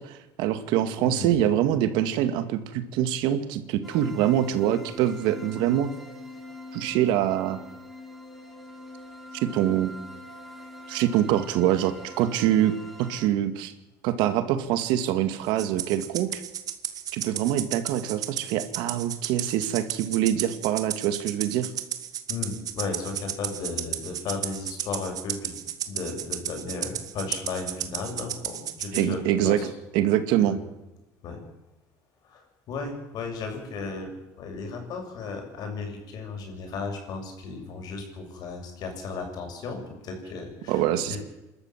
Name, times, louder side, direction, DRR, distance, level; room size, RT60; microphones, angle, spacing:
voice 1, 0.0-5.9 6.7-7.6 9.4-10.0 10.9-13.7 14.0-16.4 17.1-21.7 28.9-29.6 29.9-30.6 40.7-41.2, right 11 dB, 80° right, 10 dB, 2.2 m, -24 dB
voice 2, 1.0-1.4 22.3-25.5 25.9-29.2 29.4-29.7 30.4-30.6 31.2-31.4 32.2-34.1 34.4-40.8 41.1-41.2, left 4 dB, 60° left, 3 dB, 7.0 m, -35 dB
sound 1, 3.8-13.3, left 1 dB, ahead, 3.4 m, -44 dB
Rattle (instrument), 15.6-29.1, right 10 dB, 50° right, 1.9 m, -33 dB
27.5 x 13.0 x 7.4 m, 1.0 s
cardioid pair, 110°, 8 cm